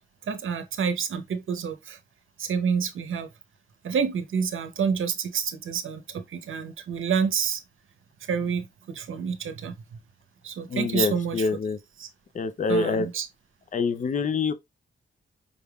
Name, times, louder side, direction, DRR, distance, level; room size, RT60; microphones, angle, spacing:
voice 1, 0.3-2.0 2.4-3.3 3.8-7.6 8.3-9.7 10.4-11.5 12.0-12.1 12.7-13.3, right 6 dB, 80° right, 0.7 m, -28 dB
voice 2, 10.7-11.8 12.3-13.1 13.7-14.5, left 4 dB, 40° left, 0.5 m, -26 dB
5.2 x 3.4 x 2.3 m
wide cardioid pair, 105°, 20 cm